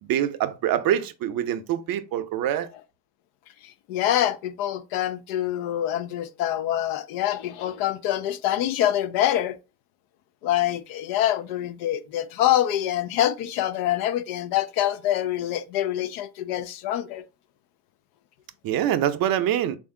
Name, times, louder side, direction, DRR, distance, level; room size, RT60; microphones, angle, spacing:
voice 1, 0.0-2.7 18.6-19.8, right 11 dB, 50° right, 0.6 m, -25 dB
voice 2, 3.9-9.6 10.4-17.2, left 12 dB, 80° left, 0.5 m, -25 dB
3.5 x 2.5 x 3.6 m
supercardioid pair, 80°, 45 cm